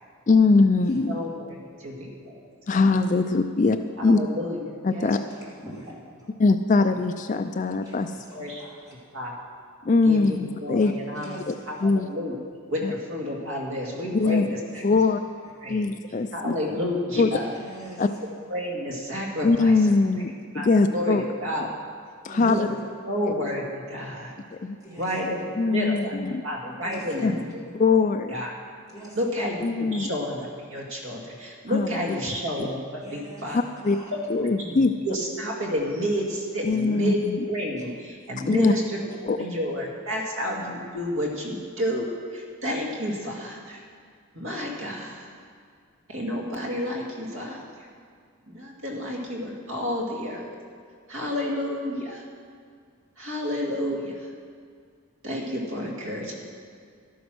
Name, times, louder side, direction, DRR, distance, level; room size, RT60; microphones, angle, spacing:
voice 1, 0.3-1.2 2.7-4.2 4.8-5.2 6.4-8.1 9.8-10.9 11.5-11.6 11.8-12.1 12.8-12.9 14.1-14.5 14.8-15.2 15.7-16.5 17.2-17.3 18.0-18.1 19.4-21.2 22.2-22.7 24.5-24.8 25.6-26.4 27.2-27.3 27.7-28.4 29.6-30.1 31.7-32.2 33.5-34.0 34.3-34.9 36.6-37.4 38.5-38.7 39.3-39.4, left 3 dB, 35° left, 8 dB, 0.3 m, -22 dB
voice 2, 1.1-2.4 2.7-2.9 4.0-4.6 4.9-5.2 6.8-7.0 8.3-8.6 9.1-9.4 10.0-11.4 11.7-12.4 12.7-14.8 15.6-15.9 16.3-17.6 18.2-19.9 20.5-21.7 22.4-22.8 23.0-24.3 25.0-26.2 26.4-27.6 28.3-28.5 29.1-33.6 34.4-37.2 37.5-42.1 42.3-43.8 44.3-45.2 46.1-47.9 48.5-50.5 51.1-52.2 53.2-54.3 55.2-56.3, equal, 60° right, -2 dB, 2.0 m, -30 dB
voice 3, 5.0-5.9 7.8-8.9 11.1-11.8 14.2-14.3 15.0-15.1 15.4-15.5 17.4-18.1 22.3-22.5 24.8-25.1 26.8-27.4 28.9-29.2 33.0-33.4 33.8-34.1 37.8-37.9 38.5-38.6, right 1 dB, 15° right, -7 dB, 2.9 m, -43 dB
12.5 x 9.4 x 6.2 m, 2.1 s
head